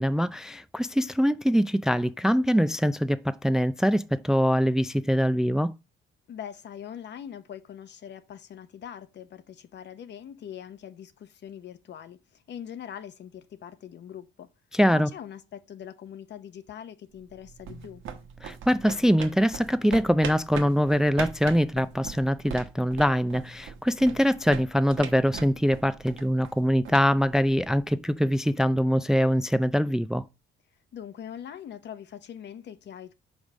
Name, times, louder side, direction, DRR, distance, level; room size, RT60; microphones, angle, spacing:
voice 1, 0.0-5.7 14.7-15.1 18.4-30.2, equal, 5° right, 0.4 m, -23 dB
voice 2, 6.3-14.5 14.9-18.0 30.9-33.1, left 9 dB, 65° left, 1.0 m, -42 dB
sound 1, 17.2-28.0, right 7 dB, 85° right, 1.3 m, -41 dB
5.3 x 5.1 x 6.2 m
cardioid pair, 90°, 20 cm